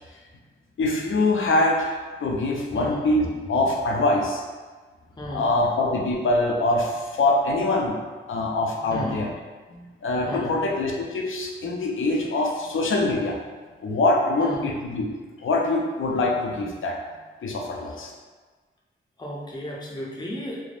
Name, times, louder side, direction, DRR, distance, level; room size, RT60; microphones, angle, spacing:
voice 1, 0.8-4.4 5.3-8.0 8.3-9.3 9.7-13.4 13.8-15.1 15.4-17.0 17.4-18.1, left 2 dB, 75° left, 0 dB, 0.5 m, -24 dB
voice 2, 5.2-5.6 8.9-9.2 10.3-10.5 14.4-14.6 17.9-18.0 19.2-20.6, left 1 dB, 20° left, -4 dB, 0.6 m, -34 dB
3.3 x 2.0 x 2.5 m, 1.4 s
wide cardioid pair, 75°, 21 cm